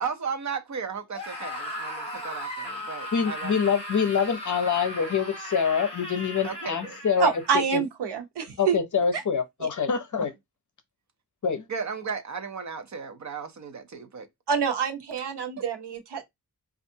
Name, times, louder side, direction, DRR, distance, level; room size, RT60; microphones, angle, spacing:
voice 1, 0.0-3.5 6.4-7.0 11.7-14.3, right 6 dB, 45° right, 0.6 m, -35 dB
Screaming, 1.1-7.6, left 1 dB, 15° left, 1.3 m, -37 dB
voice 2, 3.1-7.8 8.6-10.3 11.4-11.7, left 6 dB, 50° left, 0.6 m, -25 dB
voice 3, 7.2-8.8 9.6-9.7 14.5-16.2, right 6 dB, 85° right, 0.8 m, -27 dB
4.3 x 2.4 x 2.7 m
wide cardioid pair, 175°, 39 cm